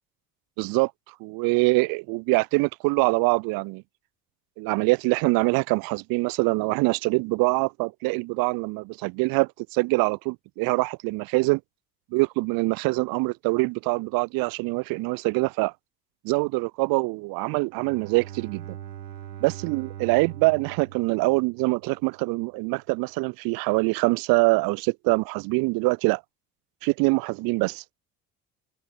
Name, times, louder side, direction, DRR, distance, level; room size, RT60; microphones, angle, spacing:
voice 1, 0.6-0.9 1.2-3.8 4.6-11.6 12.1-15.7 16.2-18.8 19.4-26.2 26.8-27.8, right 26 dB, 50° right, 0.5 m, -24 dB
Bowed string instrument, 17.7-22.2, right 11 dB, 80° right, 1.1 m, -41 dB
figure-of-eight pair, 55°, 48 cm